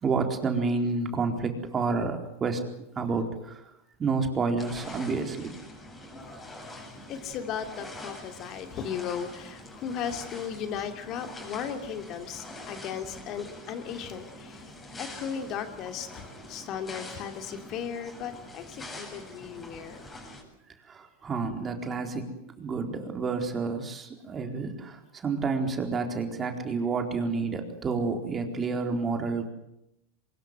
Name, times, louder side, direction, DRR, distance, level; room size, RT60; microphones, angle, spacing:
voice 1, 0.0-2.6 3.0-3.6 4.0-5.5 20.9-22.3 22.6-29.5, right 4 dB, 25° right, 4 dB, 4.3 m, -29 dB
sound 1, 4.6-20.4, left 1 dB, 15° left, 7.8 m, -44 dB
voice 2, 7.1-14.7 15.0-20.1, left 8 dB, 45° left, 6 dB, 2.9 m, -36 dB
24.0 x 21.5 x 8.2 m, 0.81 s
supercardioid pair, 125°, 0 cm